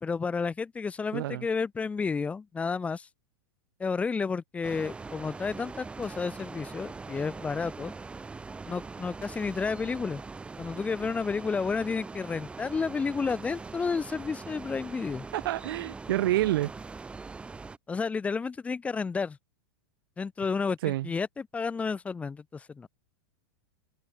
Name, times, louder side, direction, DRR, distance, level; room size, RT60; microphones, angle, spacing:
voice 1, 0.0-3.1 3.8-7.9 8.6-10.2 10.6-15.3 17.9-19.4 20.2-22.9, left 5 dB, 10° left, 2.2 m, -31 dB
voice 2, 1.1-1.4 15.3-16.7 20.8-21.1, right 15 dB, 65° right, 0.8 m, -28 dB
sound 1, 4.6-17.8, right 4 dB, 10° right, 3.2 m, -42 dB
supercardioid pair, 160°, 13 cm